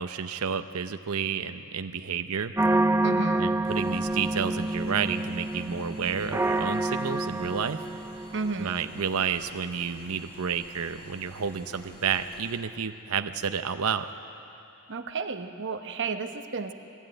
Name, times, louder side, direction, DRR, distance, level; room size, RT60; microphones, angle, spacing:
voice 1, 0.0-2.5 3.4-7.8 8.6-14.1, right 6 dB, 80° right, 9 dB, 0.7 m, -30 dB
sound 1, 2.6-8.7, right 2 dB, 10° right, 0.5 m, -28 dB
voice 2, 3.0-3.5 8.3-8.8 14.9-16.7, right 4 dB, 55° right, 7 dB, 1.1 m, -32 dB
sound 2, 3.6-12.6, equal, 50° left, 4.7 m, -49 dB
21.0 x 16.0 x 9.0 m, 2.9 s
head